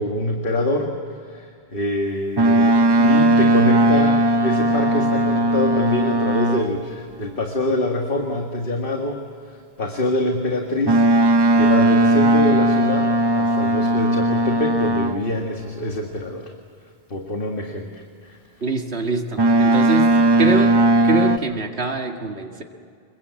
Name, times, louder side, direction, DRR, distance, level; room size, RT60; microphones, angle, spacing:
voice 1, 0.0-16.5 17.1-18.4, left 1 dB, 60° left, 2 dB, 2.1 m, -25 dB
Boat Water vehicle, 2.4-6.9 10.9-15.4 19.4-21.4, right 1 dB, 30° right, 0.6 m, -17 dB
voice 2, 18.6-20.1 20.4-20.7 21.0-22.6, right 3 dB, 90° right, 3 dB, 2.3 m, -24 dB
27.0 x 23.0 x 8.4 m, 2.3 s
omnidirectional pair, 1.1 m